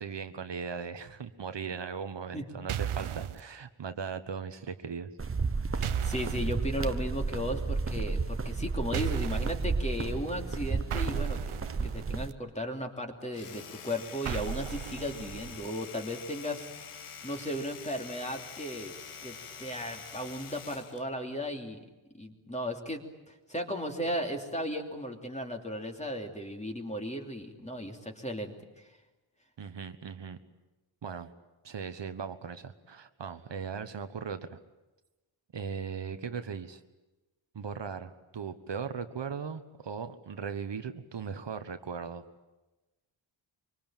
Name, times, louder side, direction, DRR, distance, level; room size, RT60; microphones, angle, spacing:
voice 1, 0.0-5.1 29.6-30.4 31.0-31.3 31.6-34.6 35.5-36.8 37.5-42.2, right 6 dB, 60° right, 9 dB, 1.3 m, -38 dB
sound 1, 2.7-3.4 5.8-6.5 8.9-9.7 10.9-12.3 14.3-15.7, right 10 dB, 75° right, 0.9 m, -35 dB
sound 2, 5.2-12.3, right 4 dB, 25° right, 0.9 m, -32 dB
voice 2, 5.7-18.9 19.2-21.8 22.1-28.9, equal, 15° left, 3 dB, 2.9 m, -36 dB
Domestic sounds home sounds, 13.2-21.1, left 6 dB, 90° left, 1.7 m, -46 dB
25.0 x 25.0 x 9.1 m, 1.1 s
wide cardioid pair, 170°, 50 cm